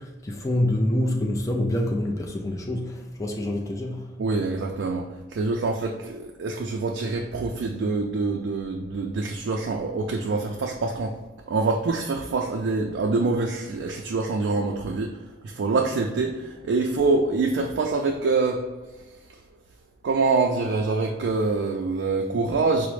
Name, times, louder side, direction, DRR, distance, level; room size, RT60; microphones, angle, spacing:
voice 1, 0.0-4.2, left 1 dB, 15° left, 0 dB, 0.4 m, -26 dB
voice 2, 4.2-5.1 5.3-11.1 11.5-15.1 15.4-18.6 20.0-22.9, right 3 dB, 85° right, 1 dB, 0.3 m, -25 dB
4.8 x 2.0 x 3.1 m, 1.2 s
head